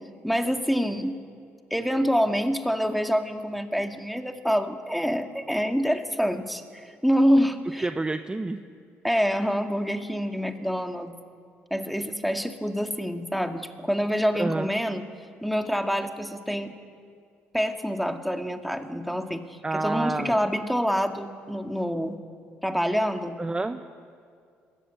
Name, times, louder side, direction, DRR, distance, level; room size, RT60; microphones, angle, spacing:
voice 1, 0.2-1.2 1.7-7.9 9.0-11.1 11.7-15.0 15.4-16.7 17.5-22.2 22.6-23.4, equal, ahead, 5 dB, 1.9 m, -26 dB
voice 2, 7.8-8.6 14.3-14.7 19.6-20.4 23.4-23.8, right 2 dB, 20° right, 9 dB, 0.9 m, -28 dB
21.0 x 14.5 x 9.1 m, 2.3 s
supercardioid pair, 70°, 5 cm